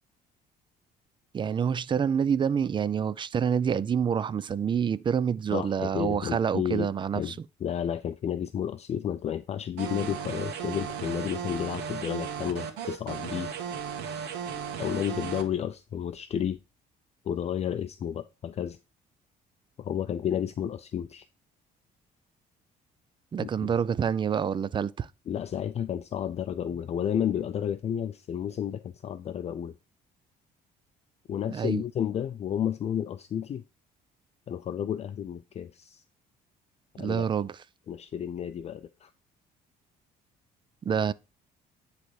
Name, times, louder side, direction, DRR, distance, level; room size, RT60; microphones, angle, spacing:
voice 1, 1.3-7.4 23.3-25.1 31.5-31.8 37.0-37.6 40.8-41.1, right 7 dB, 30° right, 0.4 m, -27 dB
voice 2, 5.5-6.9 7.1-7.4 7.6-13.5 14.8-16.6 17.2-18.8 19.8-21.3 23.4-23.5 25.3-29.7 31.3-33.6 34.5-36.0 37.0-37.3 37.9-39.1, left 9 dB, 40° left, 0.5 m, -31 dB
sound 1, 9.8-15.4, right 7 dB, 90° right, 1.4 m, -35 dB
10.0 x 3.4 x 4.7 m
cardioid pair, 110°, 17 cm